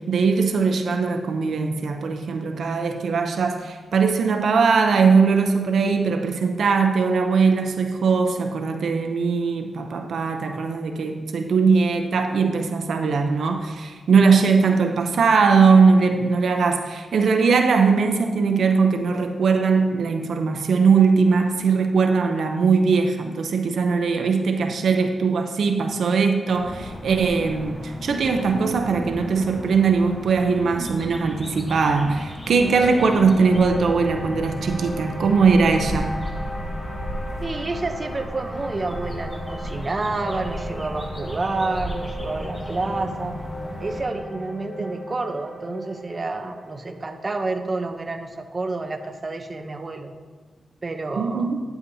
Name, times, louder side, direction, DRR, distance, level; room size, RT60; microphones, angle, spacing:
voice 1, 0.0-36.2 51.1-51.6, right 5 dB, 75° right, 4 dB, 0.6 m, -20 dB
sound 1, 26.6-44.1, equal, 15° left, 1.3 m, -35 dB
sound 2, 32.6-48.8, equal, 45° left, 1.5 m, -37 dB
voice 2, 37.4-43.4 43.8-50.1 50.8-51.5, right 3 dB, 35° right, 6 dB, 0.7 m, -29 dB
9.7 x 8.2 x 2.7 m, 1.4 s
cardioid pair, 85°, 0 cm